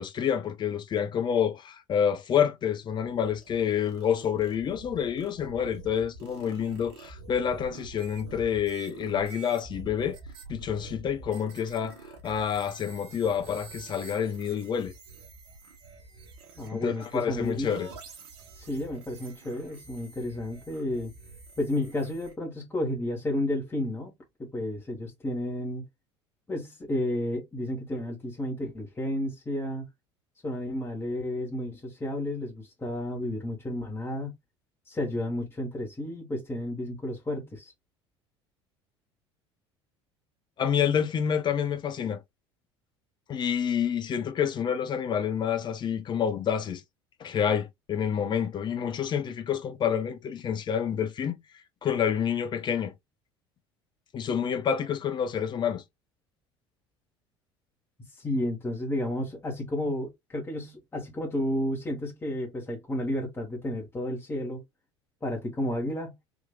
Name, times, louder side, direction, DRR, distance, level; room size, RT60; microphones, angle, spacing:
voice 1, 0.0-10.2 10.5-12.0 12.2-14.9 16.7-17.9 40.6-42.2 43.3-46.8 47.2-51.4 51.8-52.9 54.1-55.8, left 8 dB, 30° left, 0.7 m, -28 dB
sound 1, 2.8-22.3, right 4 dB, 65° right, 0.9 m, -47 dB
voice 2, 16.6-17.7 18.5-21.1 21.6-24.1 24.4-25.8 26.5-29.8 30.4-34.3 34.9-37.7 58.1-64.6 65.2-66.1, left 1 dB, 15° left, 1.4 m, -32 dB
3.6 x 3.0 x 2.3 m
figure-of-eight pair, 65°, 14 cm